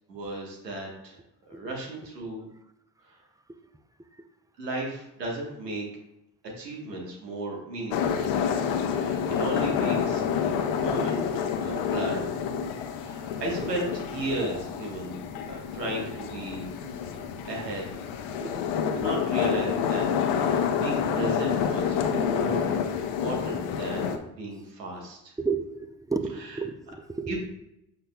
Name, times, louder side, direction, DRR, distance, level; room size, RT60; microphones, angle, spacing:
voice 1, 0.1-1.2 1.5-2.5 3.0-3.2 4.6-5.8 6.6-8.3 8.9-11.2 11.6-12.3 13.0-15.2 15.4-16.7 17.1-17.2 17.5-17.8 18.9-22.6 23.0-25.3 26.3-26.6 27.3-27.4, right 2 dB, 90° right, -2 dB, 1.5 m, -35 dB
sound 1, 7.9-24.2, left 7 dB, 65° left, 0.9 m, -28 dB
voice 2, 22.0-22.6 25.4-27.4, right 4 dB, 5° right, 9 dB, 0.6 m, -33 dB
8.1 x 6.5 x 2.3 m, 0.83 s
hypercardioid pair, 55°, 48 cm